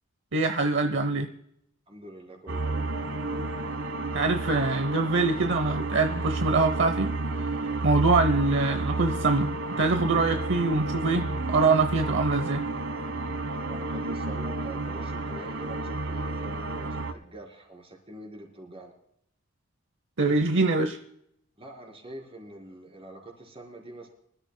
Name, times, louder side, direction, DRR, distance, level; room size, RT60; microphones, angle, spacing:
voice 1, 0.3-1.3 4.1-7.1 7.8-12.7 20.2-21.0, right 3 dB, 65° right, 8 dB, 0.8 m, -24 dB
voice 2, 1.9-2.9 13.7-18.9 21.6-24.1, right 1 dB, 30° right, 1 dB, 4.2 m, -44 dB
sound 1, 2.5-17.1, right 3 dB, 80° right, 1.3 m, -31 dB
25.0 x 13.0 x 2.2 m, 0.74 s
head